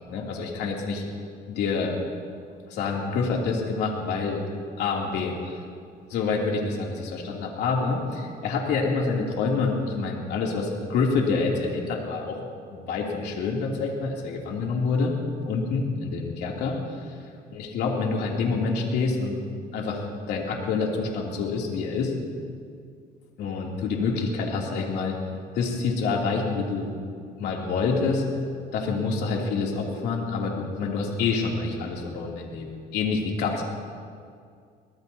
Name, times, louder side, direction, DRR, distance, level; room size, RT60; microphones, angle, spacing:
voice 1, 0.1-1.0 1.5-1.9 2.7-4.4 4.8-5.6 6.1-12.4 12.7-15.1 15.4-16.7 17.5-19.4 19.7-20.0 20.3-22.1 23.4-25.2 25.5-26.9 27.4-28.2 28.7-33.6, left 4 dB, 80° left, -2 dB, 3.0 m, -27 dB
23.5 x 19.5 x 2.9 m, 2.2 s
cardioid pair, 110°, 17 cm